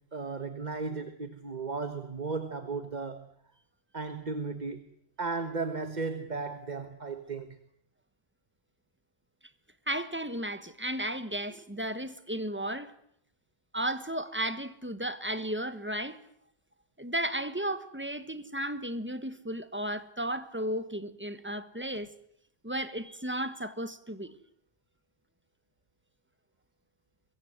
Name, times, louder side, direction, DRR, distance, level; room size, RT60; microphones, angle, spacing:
voice 1, 0.0-3.3 3.9-4.8 5.2-7.6, right 4 dB, 45° right, 1.5 m, -35 dB
voice 2, 9.9-12.9 13.7-16.2 17.0-22.1 22.6-24.4, right 1 dB, 10° right, 1.4 m, -34 dB
24.0 x 23.0 x 8.0 m
omnidirectional pair, 1.1 m